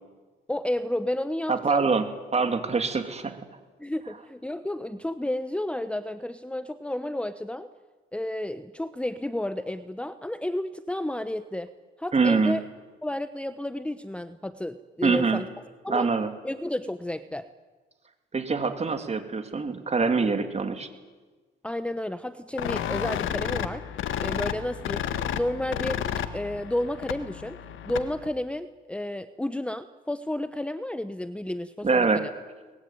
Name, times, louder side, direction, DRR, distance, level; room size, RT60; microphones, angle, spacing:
voice 1, 0.5-1.9 3.8-7.7 8.1-11.7 12.0-12.6 13.0-15.5 15.8-16.1 16.4-17.5 21.6-23.8 24.2-25.1 25.3-26.0 26.3-27.6 27.9-32.3, left 1 dB, 5° left, 12 dB, 0.9 m, -31 dB
voice 2, 1.5-2.0 2.3-3.4 12.1-12.5 15.0-15.4 15.9-16.3 18.3-20.9 31.8-32.2, right 4 dB, 35° right, 7 dB, 3.1 m, -24 dB
sound 1, 22.6-28.3, left 9 dB, 80° left, 1.7 m, -32 dB
23.0 x 20.5 x 9.4 m, 1.3 s
cardioid pair, 90°, 20 cm